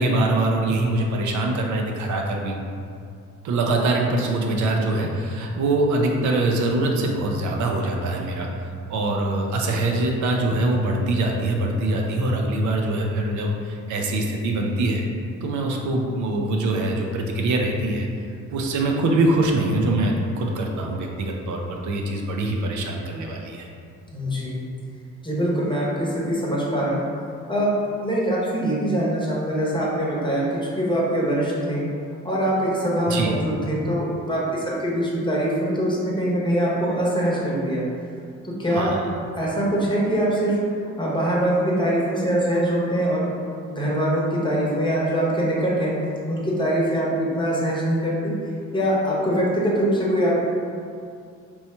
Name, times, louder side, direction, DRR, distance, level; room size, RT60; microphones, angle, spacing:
voice 1, 0.0-2.6 3.4-8.5 8.9-15.0 15.4-18.1 18.5-23.7 33.1-33.3 38.7-39.0, right 2 dB, 75° right, 1 dB, 0.5 m, -23 dB
voice 2, 24.1-24.6 25.2-27.0 27.5-27.7 28.0-30.5 30.8-31.8 32.2-37.8 38.4-39.0 39.4-40.6 41.0-43.3 43.7-45.9 46.3-48.3 48.7-50.3, right 1 dB, 15° left, -5 dB, 0.9 m, -23 dB
2.9 x 2.3 x 4.2 m, 2.4 s
cardioid pair, 90°, 30 cm